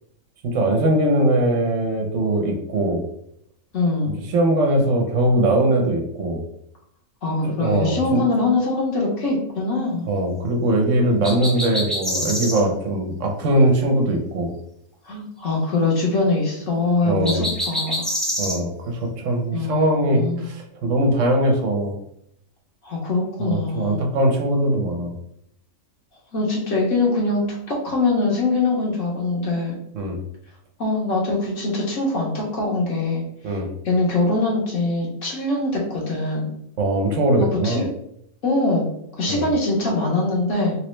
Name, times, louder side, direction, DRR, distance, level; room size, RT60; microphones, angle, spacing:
voice 1, 0.4-3.1 4.3-6.4 7.4-8.2 10.1-14.5 17.0-17.5 18.4-21.9 23.4-25.1 29.9-30.2 33.4-33.7 36.8-37.8 39.3-39.5, right 1 dB, 65° right, 3 dB, 1.0 m, -21 dB
voice 2, 3.7-4.1 7.2-10.1 15.0-18.0 19.5-20.5 22.8-24.0 26.3-29.8 30.8-33.2 33.8-36.5 37.6-37.9 38.4-38.9 39.2-40.7, left 2 dB, 65° left, -3 dB, 1.2 m, -23 dB
sound 1, 11.2-12.6 17.2-18.6, equal, ahead, 0.5 m, -26 dB
3.1 x 3.1 x 3.1 m, 0.75 s
omnidirectional pair, 1.4 m